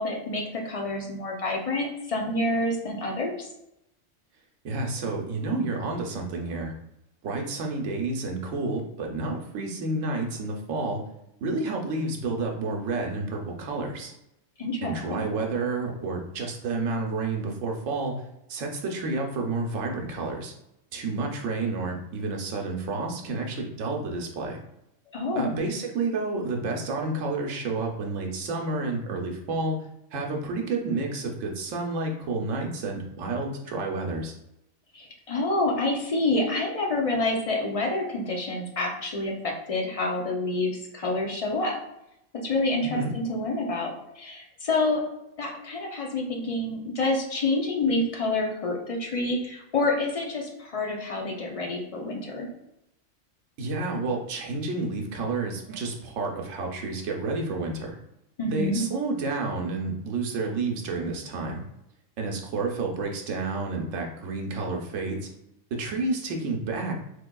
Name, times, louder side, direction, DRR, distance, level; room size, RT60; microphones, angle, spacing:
voice 1, 0.0-3.3 14.6-15.3 25.1-25.5 34.9-41.8 42.4-45.0 45.4-52.5 58.4-58.8, left 2 dB, 50° left, -1 dB, 0.4 m, -28 dB
voice 2, 4.6-6.7 7.2-11.0 11.4-14.1 14.8-18.1 18.5-20.5 20.9-24.6 25.3-29.8 30.1-34.3 42.8-43.1 53.6-58.0 58.4-61.6 62.2-65.3 65.7-66.9, right 3 dB, 80° right, 1 dB, 1.0 m, -30 dB
3.6 x 3.1 x 2.2 m, 0.83 s
omnidirectional pair, 1.3 m